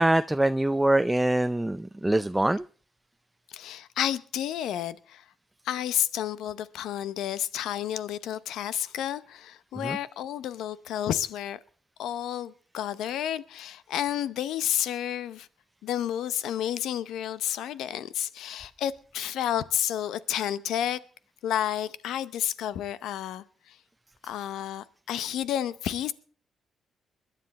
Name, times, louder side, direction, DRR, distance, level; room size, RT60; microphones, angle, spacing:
voice 1, 0.0-2.6 9.8-10.0, right 1 dB, 10° right, 0.5 m, -24 dB
voice 2, 3.5-5.2 5.6-11.6 12.0-15.5 15.8-21.0 21.4-23.8 24.2-26.1, left 11 dB, 75° left, 0.7 m, -31 dB
21.5 x 10.0 x 4.2 m
hypercardioid pair, 50°, 0 cm